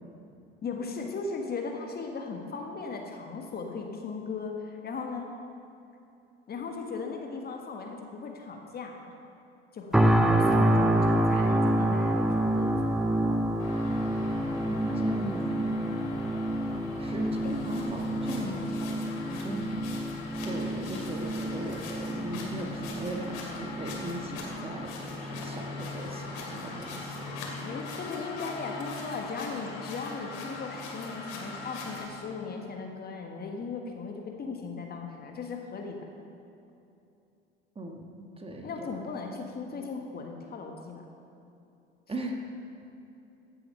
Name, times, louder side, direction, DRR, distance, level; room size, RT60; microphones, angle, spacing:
voice 1, 0.6-5.3 6.5-9.0 9.7-13.0 17.4-17.6 27.6-36.0 38.6-41.0, left 4 dB, 30° left, 2 dB, 1.4 m, -37 dB
sound 1, 9.9-24.9 25.4-25.6, right 1 dB, ahead, 0.9 m, -28 dB
sound 2, 13.6-32.1, left 3 dB, 60° left, 2.4 m, -40 dB
voice 2, 14.6-15.7 17.0-19.7 20.4-27.8 37.7-38.1 38.4-38.9 42.1-42.5, right 1 dB, 20° right, 2 dB, 1.5 m, -38 dB
15.5 x 7.1 x 5.6 m, 2.8 s
figure-of-eight pair, 65°, 30 cm